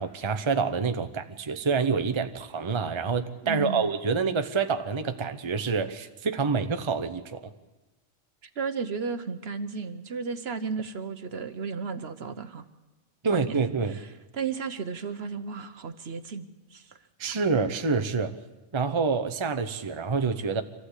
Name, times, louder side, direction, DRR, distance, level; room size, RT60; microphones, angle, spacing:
voice 1, 0.0-7.5 13.2-14.0 17.2-18.4 18.7-20.6, right 5 dB, 25° right, 8 dB, 0.8 m, -27 dB
voice 2, 3.4-3.9 8.4-12.7 13.3-13.6 13.9-14.1 14.3-17.0 17.3-17.4, right 5 dB, 60° right, 10 dB, 1.1 m, -34 dB
25.0 x 15.0 x 8.2 m, 1.1 s
omnidirectional pair, 1.3 m